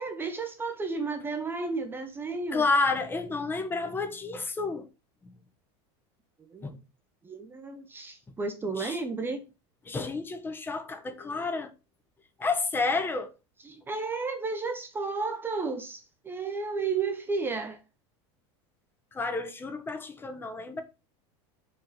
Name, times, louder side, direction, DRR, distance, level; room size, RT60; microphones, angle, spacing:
voice 1, 0.0-2.6 6.4-6.7 7.2-9.5 13.6-17.8, right 4 dB, 15° right, 0.8 m, -33 dB
voice 2, 2.5-4.9 5.2-5.3 6.6-6.8 8.8-9.0 9.9-11.7 12.4-13.3 19.1-20.8, left 3 dB, 15° left, 1.1 m, -30 dB
5.5 x 5.1 x 6.6 m
supercardioid pair, 140°, 14 cm